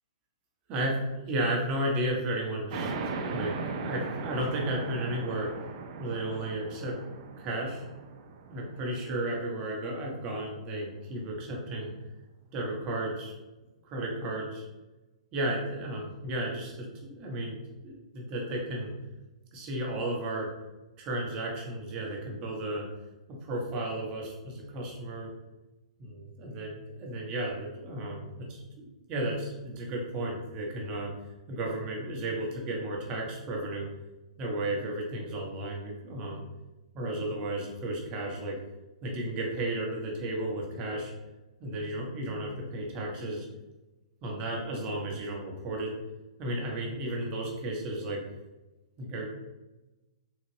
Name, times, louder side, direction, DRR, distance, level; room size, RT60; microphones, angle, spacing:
voice 1, 0.7-5.5 6.0-6.9 7.4-7.8 8.5-11.9 12.5-13.3 13.8-14.7 15.3-18.9 19.5-20.5 21.0-22.8 23.3-25.3 26.0-31.1 31.5-33.9 34.4-36.4 36.9-38.6 39.0-41.1 41.6-43.5 44.2-45.9 46.4-48.2 49.0-49.3, right 1 dB, 30° right, -2 dB, 1.0 m, -33 dB
sound 1, 2.7-9.9, right 4 dB, 50° right, 0.5 m, -38 dB
3.9 x 2.4 x 3.2 m, 1.1 s
hypercardioid pair, 130°, 4 cm